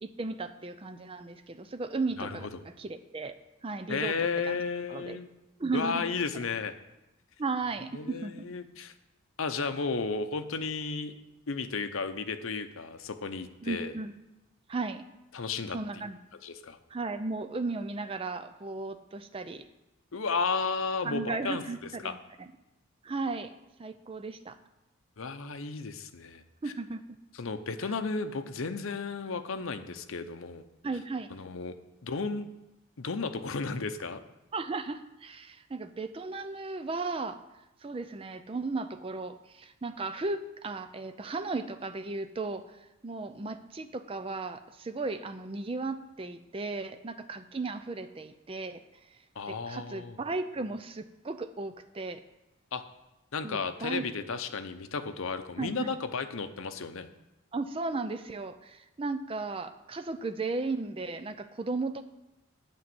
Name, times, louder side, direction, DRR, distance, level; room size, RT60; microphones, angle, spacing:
voice 1, 0.0-3.3 3.6-4.2 4.4-4.6 4.9-5.2 5.6-6.1 7.4-8.5 13.6-14.1 14.7-15.0 15.7-16.2 16.9-19.6 21.0-22.5 23.0-23.5 23.8-24.6 26.6-27.0 30.8-31.3 34.5-37.4 37.8-48.8 49.5-52.2 53.4-54.0 55.6-55.9 57.5-62.0, right 3 dB, 25° right, 10 dB, 0.4 m, -35 dB
voice 2, 2.2-2.6 3.9-5.3 5.7-6.7 7.9-8.9 9.4-11.1 11.5-13.9 15.3-16.0 16.4-16.8 20.1-21.6 22.0-22.1 25.2-26.4 27.4-30.6 31.3-31.8 32.0-32.5 33.0-34.2 49.4-50.2 52.7-52.8 53.3-57.1, left 4 dB, 80° left, 9 dB, 0.7 m, -33 dB
8.6 x 5.3 x 7.7 m, 0.97 s
head